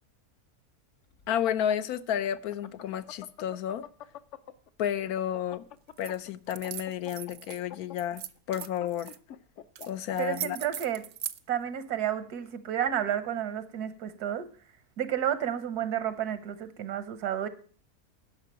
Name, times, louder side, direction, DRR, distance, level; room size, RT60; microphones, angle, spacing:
sound 1, 1.1-4.7 5.0-10.4, left 9 dB, 60° left, 0.9 m, -45 dB
voice 1, 1.3-3.9 4.8-5.6 6.0-8.2 8.5-9.1 9.9-10.6, left 10 dB, 75° left, 1.2 m, -31 dB
sound 2, 6.0-6.2 6.5-7.6 8.0-9.2 9.7-9.9 10.1-11.4, right 10 dB, 60° right, 0.7 m, -39 dB
voice 2, 10.2-11.0 11.5-14.5 15.0-17.5, right 10 dB, 85° right, 1.6 m, -31 dB
10.5 x 5.9 x 8.8 m
omnidirectional pair, 1.6 m